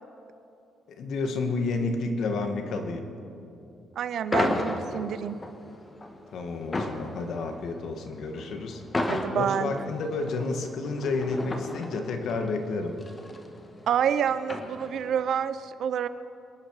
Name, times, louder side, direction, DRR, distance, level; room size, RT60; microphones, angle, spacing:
voice 1, 0.9-3.0 6.3-8.8 9.3-13.0, left 3 dB, 70° left, 5 dB, 1.9 m, -30 dB
voice 2, 4.0-5.4 9.1-9.7 13.9-16.1, right 8 dB, 70° right, 13 dB, 0.7 m, -28 dB
sound 1, 4.3-15.2, left 2 dB, 25° left, 1.7 m, -34 dB
26.0 x 11.0 x 4.9 m, 2.7 s
cardioid pair, 90°, 0 cm